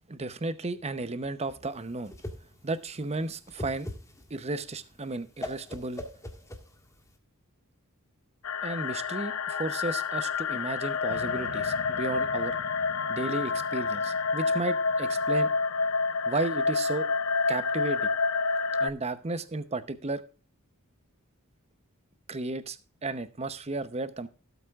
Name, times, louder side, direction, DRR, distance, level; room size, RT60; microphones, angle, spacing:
voice 1, 0.1-2.1 2.6-3.9 4.3-6.0 8.6-12.5 13.1-15.5 16.3-17.1 17.5-18.1 18.8-20.2 22.3-22.8 23.0-24.3, right 2 dB, 30° right, 13 dB, 0.8 m, -33 dB
Whoosh swoosh swish, 1.7-7.2, left 1 dB, 15° left, 1.7 m, -41 dB
sound 1, 8.4-18.9, left 4 dB, 65° left, 0.6 m, -28 dB
sound 2, 11.1-18.5 19.0-19.1, right 3 dB, 65° right, 1.1 m, -49 dB
17.0 x 8.1 x 2.4 m, 0.34 s
head